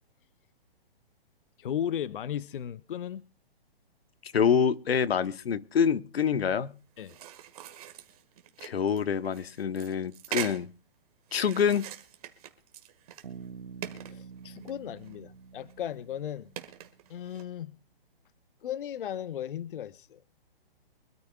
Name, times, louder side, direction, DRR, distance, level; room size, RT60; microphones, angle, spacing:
voice 1, 1.6-3.2 7.0-7.2 14.1-16.5 17.1-17.8 18.6-20.2, left 10 dB, 60° left, 0.6 m, -36 dB
voice 2, 4.2-6.8 8.6-10.7 11.3-11.9, left 7 dB, 90° left, 1.0 m, -26 dB
sound 1, 7.0-10.7 11.3-13.5 13.8-15.2 15.6-15.7 16.6-17.4, right 11 dB, 40° right, 1.7 m, -42 dB
Bass guitar, 13.2-16.9, right 6 dB, 80° right, 1.6 m, -47 dB
24.5 x 13.5 x 2.3 m
hypercardioid pair, 160°, 30 cm